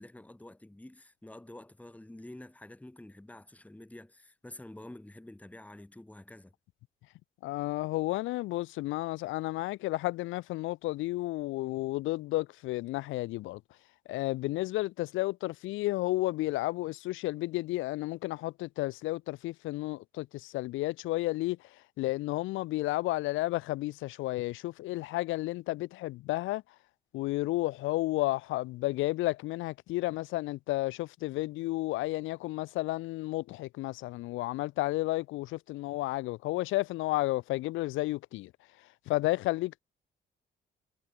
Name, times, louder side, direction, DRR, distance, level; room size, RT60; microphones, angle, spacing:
voice 1, 0.0-6.5, left 1 dB, 5° left, 1.9 m, -49 dB
voice 2, 7.4-13.6 14.1-26.6 27.1-38.5 38.8-39.8, left 18 dB, 85° left, 0.4 m, -32 dB
cardioid pair, 90°, 20 cm